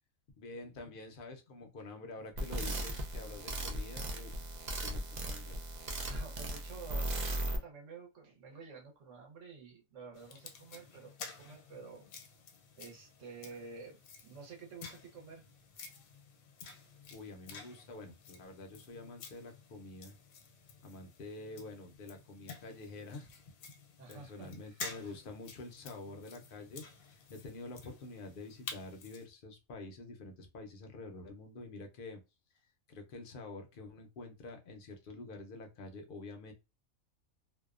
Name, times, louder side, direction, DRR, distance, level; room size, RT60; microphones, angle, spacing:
voice 1, 0.4-4.5 4.8-5.6 17.1-20.2 20.8-23.3 24.1-32.2 32.9-36.5, left 2 dB, 60° left, 4 dB, 0.6 m, -48 dB
sound 1, 2.4-7.6, right 1 dB, 90° right, 0.3 m, -37 dB
voice 2, 6.1-12.0 12.8-14.0 14.2-15.4 24.0-24.8 25.0-25.1, right 4 dB, 65° right, 0 dB, 1.1 m, -50 dB
sound 2, 10.1-29.3, left 5 dB, 85° left, 1.1 m, -51 dB
2.7 x 2.1 x 2.3 m, 0.26 s
omnidirectional pair, 1.4 m